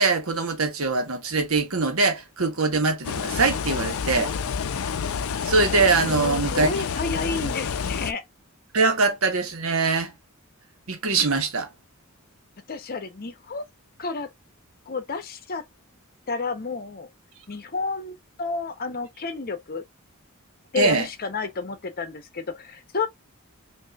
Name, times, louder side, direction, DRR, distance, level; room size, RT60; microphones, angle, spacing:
voice 1, 0.0-4.3 5.4-6.7 7.4-7.5 8.7-10.1 10.9-11.7 20.7-21.1, right 3 dB, 70° right, 1.3 m, -22 dB
sound 1, 3.0-8.1, left 6 dB, 70° left, 0.5 m, -28 dB
voice 2, 6.0-8.2 12.7-13.6 14.0-14.3 14.9-15.6 16.3-17.1 17.5-19.8 20.7-23.1, left 4 dB, 45° left, 0.8 m, -31 dB
5.4 x 2.7 x 2.3 m
head